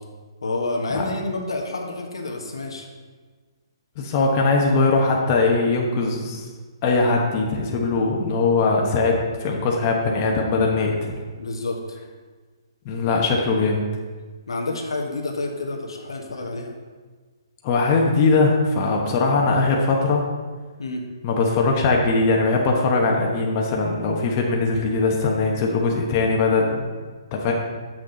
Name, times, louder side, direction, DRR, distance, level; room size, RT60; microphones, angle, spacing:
voice 1, 0.4-2.9 11.3-12.0 14.5-16.7 20.8-21.0, left 2 dB, 90° left, 1 dB, 1.3 m, -29 dB
voice 2, 4.0-6.4 6.8-11.0 12.8-13.8 17.6-20.2 21.2-26.8 27.3-27.5, left 3 dB, 30° left, 0 dB, 1.1 m, -20 dB
7.8 x 6.2 x 3.9 m, 1.4 s
hypercardioid pair, 150°, 3 cm